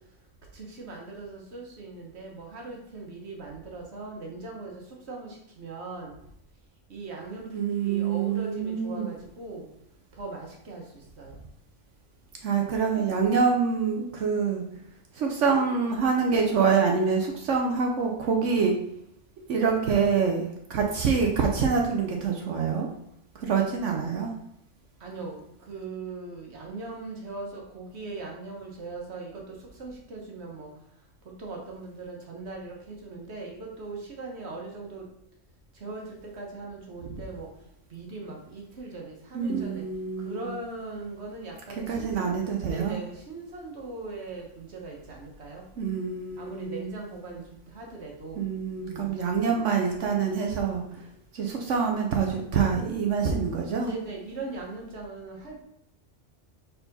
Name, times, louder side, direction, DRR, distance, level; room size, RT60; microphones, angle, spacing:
voice 1, 0.5-6.2 6.9-9.7 10.1-11.4 25.0-30.7 31.4-35.1 35.7-37.5 37.9-39.9 40.2-42.4 42.6-45.7 46.4-48.4 48.8-49.2 53.8-55.6, right 3 dB, 60° right, 0 dB, 1.6 m, -40 dB
voice 2, 7.5-9.1 12.4-14.6 15.1-18.7 19.5-22.9 23.3-24.3 39.3-40.5 41.9-43.0 45.8-46.8 48.4-51.1 51.3-53.9, right 5 dB, 75° right, 1 dB, 1.1 m, -26 dB
4.7 x 4.1 x 5.3 m, 0.78 s
omnidirectional pair, 1.3 m